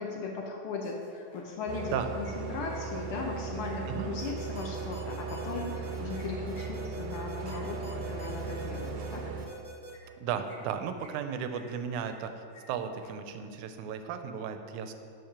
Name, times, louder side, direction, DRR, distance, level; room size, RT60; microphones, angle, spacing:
voice 1, 0.0-9.2, left 4 dB, 75° left, 1 dB, 1.3 m, -38 dB
sound 1, 0.8-1.5 1.7-3.7 5.1-8.6 9.9-10.1 10.4-11.2 11.5-12.3 12.5-12.6 12.9-13.1, left 2 dB, 55° left, 1.4 m, -56 dB
sound 2, 1.7-9.5, right 5 dB, 75° right, 1.7 m, -37 dB
sound 3, 4.2-9.9, equal, 30° left, 0.7 m, -47 dB
voice 2, 10.2-12.3 12.7-14.9, right 7 dB, 90° right, 8 dB, 2.1 m, -35 dB
7.8 x 6.9 x 5.9 m, 2.4 s
omnidirectional pair, 3.4 m